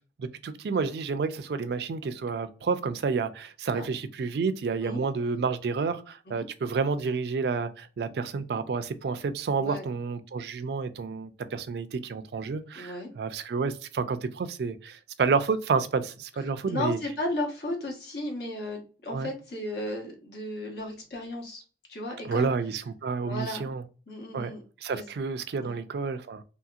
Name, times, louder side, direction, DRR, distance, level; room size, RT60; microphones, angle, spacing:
voice 1, 0.2-17.0 19.1-19.3 22.2-23.8 24.3-24.5 24.8-26.4, right 5 dB, 65° right, 0.3 m, -30 dB
voice 2, 12.7-13.1 16.6-21.6 21.9-22.5 23.2-23.7 24.1-24.6 24.9-25.0 25.6-25.8, left 1 dB, 65° left, 1.1 m, -34 dB
2.8 x 2.8 x 2.4 m
head